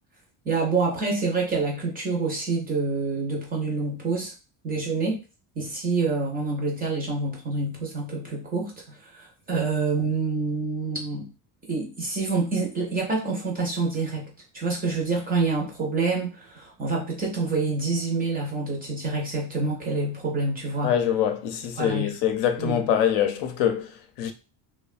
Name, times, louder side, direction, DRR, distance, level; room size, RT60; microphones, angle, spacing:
voice 1, 0.5-4.3 4.6-5.2 5.6-11.3 11.7-21.0 21.8-22.2 22.6-22.8, right 3 dB, 20° right, 0.4 m, -27 dB
voice 2, 20.8-24.3, left 9 dB, 85° left, 0.7 m, -24 dB
3.1 x 2.1 x 2.3 m
cardioid pair, 170°, 47 cm